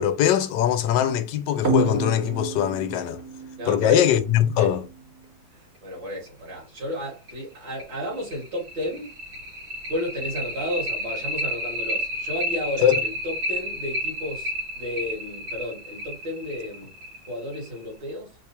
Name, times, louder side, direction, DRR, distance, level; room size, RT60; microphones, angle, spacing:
voice 1, 0.0-3.2 3.6-4.9 12.8-13.0, left 10 dB, 70° left, 1.2 m, -21 dB
sound 1, 1.6-4.8 6.3-6.4 6.8-6.9 7.3-7.4 7.8-17.8, right 1 dB, 35° right, 1.5 m, -30 dB
voice 2, 3.6-4.1 4.6-4.7 5.5-9.1 9.9-16.9 17.3-18.4, left 1 dB, 65° right, 2.9 m, -33 dB
4.8 x 2.4 x 4.3 m
omnidirectional pair, 2.1 m